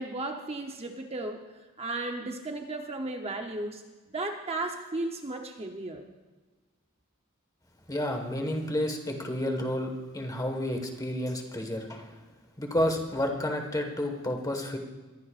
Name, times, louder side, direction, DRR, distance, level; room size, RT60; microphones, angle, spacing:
voice 1, 0.0-1.5 1.8-3.8 4.1-6.0, right 2 dB, 30° right, 3 dB, 0.9 m, -34 dB
voice 2, 7.9-12.2 12.6-14.8, left 1 dB, 15° left, 3 dB, 1.6 m, -30 dB
22.0 x 15.0 x 2.5 m, 1.3 s
head